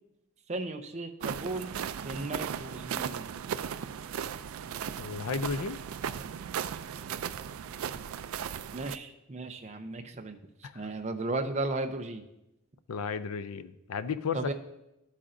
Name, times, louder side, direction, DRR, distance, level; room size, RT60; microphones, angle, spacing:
voice 1, 0.5-1.7 2.0-3.3 8.7-10.4 10.7-12.2 14.3-14.5, right 2 dB, 30° right, 6 dB, 0.6 m, -35 dB
sound 1, 1.2-9.0, right 8 dB, 75° right, 0.3 m, -36 dB
voice 2, 5.0-5.8 10.6-10.9 12.9-14.5, left 5 dB, 90° left, 13 dB, 0.5 m, -34 dB
11.5 x 8.3 x 2.6 m, 0.89 s
head